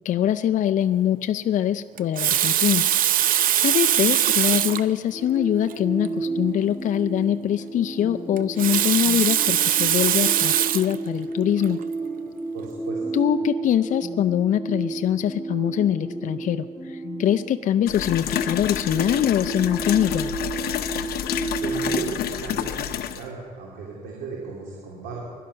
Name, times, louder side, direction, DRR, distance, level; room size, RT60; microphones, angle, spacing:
voice 1, 0.0-2.8 3.6-11.8 13.1-20.4, left 10 dB, 50° left, 10 dB, 0.5 m, -23 dB
Water tap faucet, 2.0-4.9 5.7-5.8 6.0-6.1 8.4-11.0 11.6-11.8, right 11 dB, 55° right, 0.6 m, -21 dB
sound 1, 5.1-22.1, right 3 dB, 5° right, 2.2 m, -32 dB
voice 2, 12.5-13.0 21.6-25.2, right 4 dB, 90° right, -3 dB, 2.9 m, -35 dB
sound 2, 17.9-23.3, left 10 dB, 65° left, 0.9 m, -29 dB
21.5 x 12.0 x 5.7 m, 2.2 s
cardioid pair, 110°, 17 cm